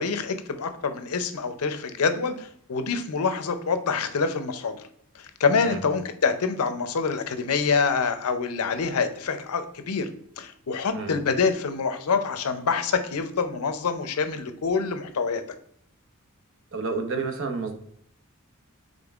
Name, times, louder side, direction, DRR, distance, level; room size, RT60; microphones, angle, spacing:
voice 1, 0.0-4.8 5.2-10.1 10.4-15.4, left 5 dB, 80° left, 9 dB, 0.6 m, -26 dB
voice 2, 16.7-17.8, right 4 dB, 60° right, 6 dB, 0.8 m, -30 dB
5.3 x 3.6 x 2.4 m, 0.69 s
head